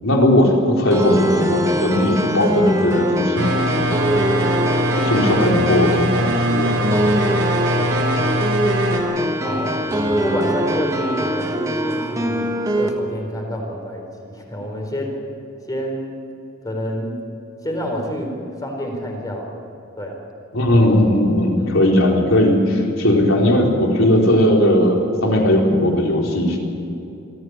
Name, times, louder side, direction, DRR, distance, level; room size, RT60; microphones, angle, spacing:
voice 1, 0.0-3.5 5.0-6.9 9.1-9.6 20.5-26.6, left 1 dB, 70° left, 0 dB, 4.2 m, -17 dB
sound 1, 0.9-12.9, equal, 15° right, 1.5 m, -22 dB
sound 2, 3.4-9.0, equal, 70° right, 3.7 m, -22 dB
voice 2, 7.7-8.4 9.4-12.4 12.8-15.2 15.7-16.2 16.6-17.2 17.6-19.6 20.0-20.2 21.6-21.8, equal, 20° left, 1 dB, 4.2 m, -28 dB
24.0 x 15.0 x 9.6 m, 2.7 s
head